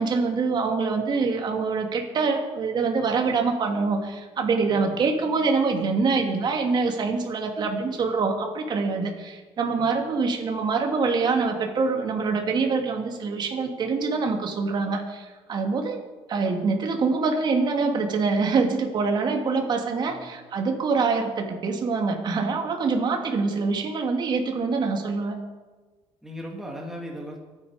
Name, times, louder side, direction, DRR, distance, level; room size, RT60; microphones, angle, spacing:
voice 1, 0.0-16.0 16.3-25.4, right 4 dB, 45° right, 3 dB, 2.7 m, -25 dB
voice 2, 4.7-5.1 9.7-10.0 20.0-20.3 26.2-27.4, equal, 5° right, -1 dB, 2.6 m, -38 dB
23.5 x 9.8 x 5.2 m, 1.3 s
cardioid pair, 125°, 11 cm